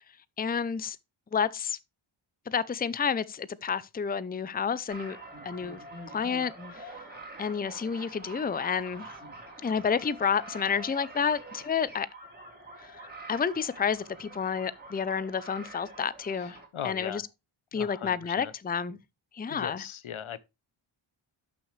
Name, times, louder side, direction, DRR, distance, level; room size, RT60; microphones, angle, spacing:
voice 1, 0.4-1.0 1.3-1.8 2.5-5.2 5.4-5.8 6.1-7.0 7.4-9.1 9.6-12.1 12.8-16.6 16.8-17.2 17.7-19.0 19.3-19.8, left 6 dB, 20° left, 0.5 m, -30 dB
sound 1, 4.9-16.7, right 2 dB, 20° right, 3.7 m, -46 dB
voice 2, 16.4-17.2 17.7-18.5 19.5-20.4, left 9 dB, 75° left, 0.8 m, -39 dB
11.5 x 6.1 x 3.2 m
wide cardioid pair, 70°, 49 cm